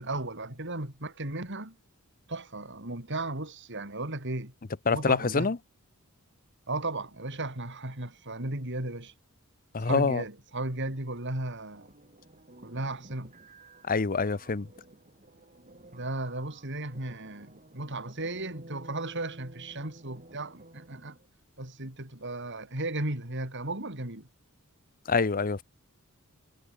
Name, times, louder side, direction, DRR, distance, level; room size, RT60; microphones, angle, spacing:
voice 1, 0.0-1.8 2.3-4.5 4.9-5.5 6.7-9.1 9.8-11.9 12.6-13.3 15.9-21.2 21.6-24.3, right 2 dB, 55° right, 5.4 m, -35 dB
voice 2, 4.9-5.6 9.7-10.2 13.8-14.7 25.1-25.6, left 4 dB, 40° left, 0.7 m, -26 dB
sound 1, 11.7-21.3, right 1 dB, 35° right, 5.5 m, -52 dB
head